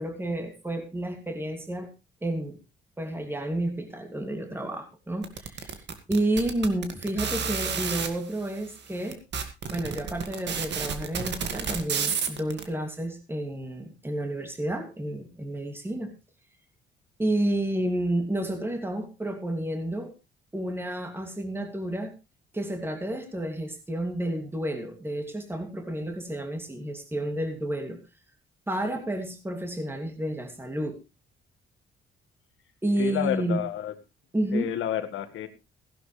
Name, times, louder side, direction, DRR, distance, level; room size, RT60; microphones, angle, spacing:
voice 1, 0.0-1.9 2.2-2.6 3.0-9.2 9.7-16.1 17.2-20.1 20.5-22.1 22.5-28.0 28.7-31.0 32.8-33.6 34.3-34.7, right 1 dB, 10° right, 2.6 m, -30 dB
sound 1, 5.2-8.1 8.8-8.9 9.1-12.6, right 6 dB, 60° right, 2.2 m, -30 dB
voice 2, 33.0-33.9 34.5-35.5, left 11 dB, 80° left, 1.8 m, -30 dB
16.0 x 11.0 x 3.3 m
cardioid pair, 90°, 20 cm